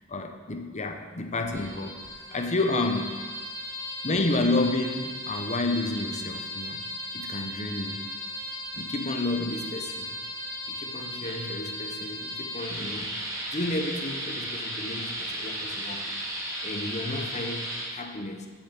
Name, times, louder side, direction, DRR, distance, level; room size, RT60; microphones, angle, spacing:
voice 1, 0.0-2.0 2.3-3.1 4.0-6.8 7.1-8.0 8.7-10.1 10.7-13.1 13.5-16.0 16.6-18.5, left 2 dB, 35° left, 5 dB, 0.9 m, -30 dB
sound 1, 1.4-17.8, equal, 15° right, 2.2 m, -36 dB
7.3 x 7.2 x 7.5 m, 1.5 s
head